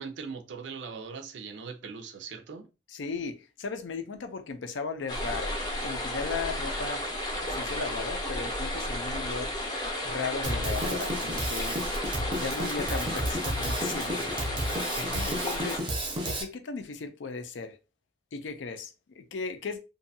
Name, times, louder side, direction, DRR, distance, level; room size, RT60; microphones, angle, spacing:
voice 1, 0.0-2.7, right 5 dB, 75° right, 0.5 m, -40 dB
voice 2, 2.9-5.6 5.8-7.0 7.5-9.7 10.0-11.9 12.3-17.8 18.3-19.8, left 4 dB, 80° left, 0.5 m, -37 dB
sound 1, 5.1-15.8, left 1 dB, 25° left, 0.6 m, -33 dB
Drum kit, 10.4-16.4, right 1 dB, 25° right, 0.5 m, -32 dB
2.6 x 2.2 x 2.6 m
head